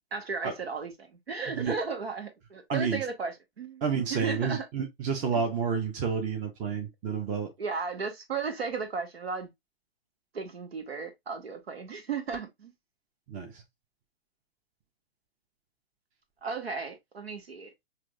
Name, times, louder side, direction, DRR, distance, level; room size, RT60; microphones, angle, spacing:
voice 1, 0.1-3.8 4.1-4.7 5.3-5.4 7.6-9.5 10.3-12.7 16.4-17.7, right 5 dB, 85° right, 1.3 m, -35 dB
voice 2, 2.7-3.0 3.8-7.5 13.3-13.6, right 6 dB, 25° right, 0.9 m, -30 dB
6.0 x 2.7 x 2.2 m
hypercardioid pair, 120°, 30 cm